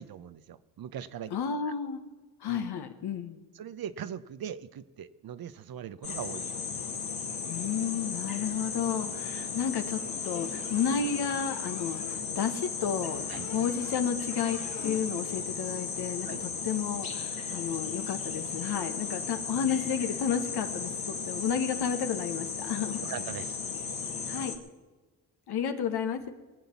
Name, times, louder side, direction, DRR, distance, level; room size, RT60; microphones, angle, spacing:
voice 1, 0.0-1.3 1.7-1.8 2.5-2.7 3.5-6.5 13.3-13.5 16.2-16.4 23.0-23.6, right 9 dB, 65° right, 14 dB, 0.9 m, -40 dB
voice 2, 1.3-2.0 2.4-3.4 7.5-23.0 24.3-24.6 25.5-26.3, left 7 dB, 75° left, 7 dB, 1.6 m, -32 dB
sound 1, 6.0-24.6, left 5 dB, 60° left, 2.2 m, -35 dB
sound 2, 10.1-12.2 13.1-14.0 14.3-15.3, left 4 dB, 45° left, 2.1 m, -47 dB
20.0 x 7.9 x 7.1 m, 1.2 s
supercardioid pair, 60°, 39 cm